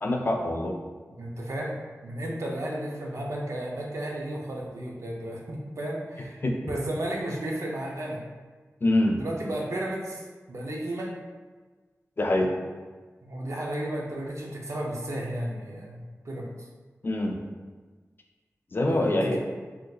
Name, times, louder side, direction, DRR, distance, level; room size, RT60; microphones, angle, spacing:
voice 1, 0.0-0.7 6.4-6.6 8.8-9.2 12.2-12.5 17.0-17.4 18.7-19.4, left 1 dB, 40° left, 2 dB, 0.4 m, -24 dB
voice 2, 1.2-1.8 2.0-6.4 6.7-8.2 9.2-11.1 13.2-16.7 18.9-19.4, right 1 dB, 65° right, -2 dB, 0.6 m, -33 dB
3.7 x 2.7 x 2.3 m, 1.4 s
wide cardioid pair, 90°, 5 cm